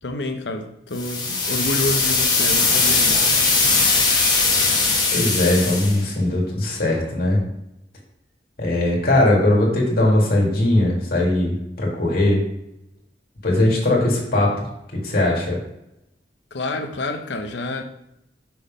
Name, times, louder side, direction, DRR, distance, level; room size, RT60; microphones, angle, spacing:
voice 1, 0.0-3.3 16.5-17.8, left 2 dB, 75° left, 6 dB, 0.8 m, -28 dB
sound 1, 1.0-6.0, left 4 dB, 25° left, 1.2 m, -19 dB
voice 2, 5.1-7.4 8.6-12.4 13.4-14.5 15.0-15.6, left 1 dB, 55° left, -3 dB, 2.0 m, -19 dB
6.0 x 3.6 x 5.0 m, 0.84 s
head